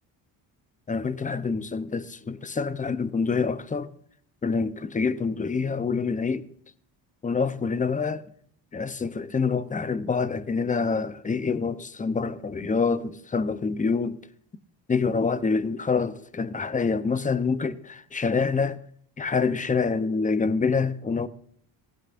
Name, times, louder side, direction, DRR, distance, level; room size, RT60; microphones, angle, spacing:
voice 1, 0.9-3.9 4.4-6.5 7.2-8.2 8.7-14.2 14.9-18.8 19.2-21.3, left 5 dB, 15° left, 0.7 m, -26 dB
18.0 x 16.0 x 2.6 m
cardioid pair, 105°, 44 cm